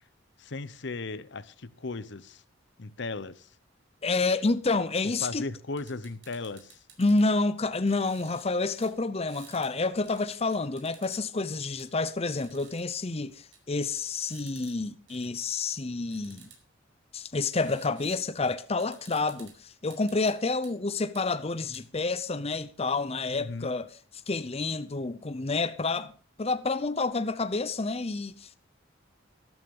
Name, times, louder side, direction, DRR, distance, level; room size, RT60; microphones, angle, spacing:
voice 1, 0.4-2.4 2.8-3.5 5.2-6.8 23.3-23.7, left 3 dB, 65° left, 0.9 m, -37 dB
voice 2, 4.0-5.5 7.0-16.5 17.1-23.9 24.3-26.1 26.4-28.6, left 3 dB, 30° left, 0.7 m, -29 dB
sound 1, 5.1-5.2 5.8-7.3 7.9-8.5 8.8-8.9 9.3-9.7 10.0-11.2 11.8-11.9 12.4-12.8 13.5-13.6 13.9-14.7 15.1-15.3 16.1-16.6 17.6-18.2 18.5-18.6 18.8-19.5 19.9-20.7 21.2-21.3 21.7-21.8, right 7 dB, 65° right, 5.1 m, -53 dB
13.5 x 13.0 x 5.4 m
head